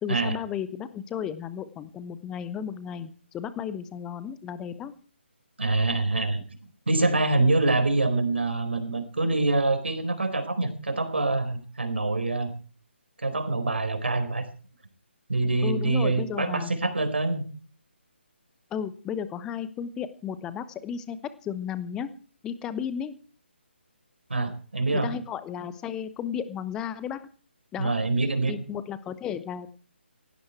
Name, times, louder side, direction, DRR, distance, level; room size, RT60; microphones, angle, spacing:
voice 1, 0.0-4.9 15.6-16.7 18.7-21.2 21.4-22.1 22.4-23.2 25.0-27.2 27.7-27.9 28.5-29.7, left 8 dB, 10° left, 14 dB, 0.9 m, -34 dB
voice 2, 5.6-6.4 6.9-12.5 13.2-14.4 15.3-17.5 24.3-25.1 27.8-28.6, right 2 dB, 65° right, 8 dB, 4.5 m, -25 dB
17.0 x 16.5 x 4.6 m, 0.41 s
figure-of-eight pair, 145°, 6 cm